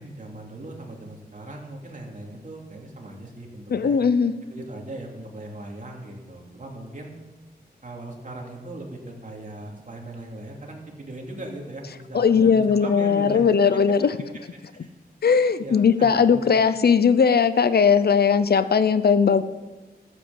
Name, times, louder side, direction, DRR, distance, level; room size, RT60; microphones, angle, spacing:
voice 1, 0.0-4.0 4.5-7.1 7.8-13.4 13.7-13.8 14.7-14.9 15.6-16.4, right 1 dB, 50° right, 0 dB, 2.9 m, -39 dB
voice 2, 3.7-4.3 12.1-14.2 15.2-19.4, left 6 dB, 70° left, 13 dB, 0.7 m, -19 dB
14.5 x 8.5 x 7.2 m, 1.2 s
wide cardioid pair, 95°, 17 cm